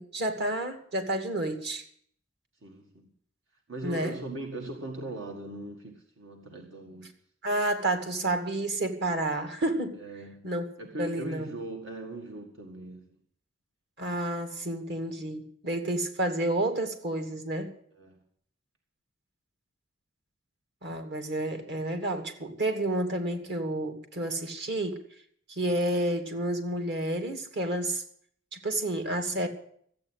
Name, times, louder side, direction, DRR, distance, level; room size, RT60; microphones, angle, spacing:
voice 1, 0.0-1.8 3.8-4.2 7.4-10.0 10.4-10.6 11.0-11.6 14.0-17.7 20.8-25.0 25.5-28.0 28.5-29.5, right 1 dB, 55° right, 2.4 m, -30 dB
voice 2, 2.6-3.1 3.7-7.1 10.0-10.4 10.8-13.2 18.0-18.2, right 1 dB, 75° right, 1.9 m, -40 dB
14.0 x 8.6 x 9.8 m
head